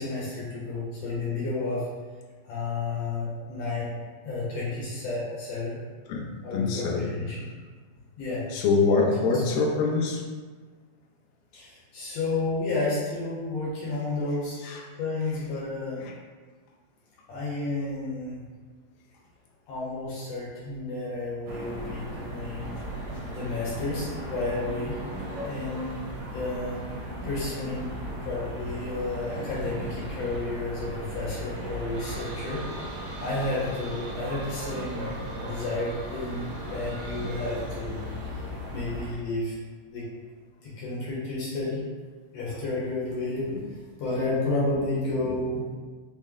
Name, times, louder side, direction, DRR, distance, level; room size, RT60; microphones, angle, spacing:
voice 1, 0.0-1.9 2.4-3.9 4.2-5.8 6.4-7.5 8.2-8.4 9.3-9.5 11.5-14.6 14.9-16.1 17.3-18.4 19.7-22.8 23.3-25.0 25.4-26.0 26.3-26.9 27.2-28.0 28.2-32.6 33.2-38.1 38.3-39.6 39.9-40.1 40.6-41.8 42.3-45.7, left 2 dB, 65° left, -7 dB, 1.6 m, -31 dB
voice 2, 6.5-7.1 8.5-10.2 14.6-14.8 16.0-16.1, left 4 dB, 90° left, -2 dB, 2.5 m, -24 dB
sound 1, 21.5-39.1, equal, 85° right, 1.5 m, -36 dB
6.2 x 2.1 x 3.6 m, 1.4 s
omnidirectional pair, 4.0 m